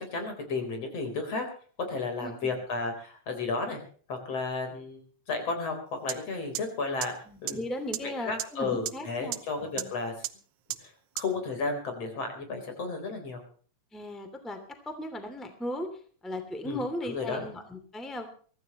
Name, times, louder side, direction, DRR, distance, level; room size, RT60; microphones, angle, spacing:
voice 1, 0.0-1.5 1.9-3.8 4.1-7.1 7.4-7.6 8.0-10.1 10.8-13.4 16.6-17.5, left 4 dB, 55° left, 5 dB, 5.1 m, -33 dB
voice 2, 2.2-2.5 7.3-9.4 9.8-9.9 13.9-14.6 14.9-15.9 16.2-18.3, left 1 dB, ahead, 7 dB, 2.3 m, -37 dB
sound 1, 6.1-6.2 6.6-6.7 7.0-7.1 7.5-7.6 7.9-8.0 8.4-8.5 8.9-9.0 9.3-9.4 9.8-9.9 10.2-10.3 10.7-10.8 11.2-11.3, right 14 dB, 85° right, 2.4 m, -31 dB
24.0 x 15.0 x 3.1 m, 0.43 s
omnidirectional pair, 3.3 m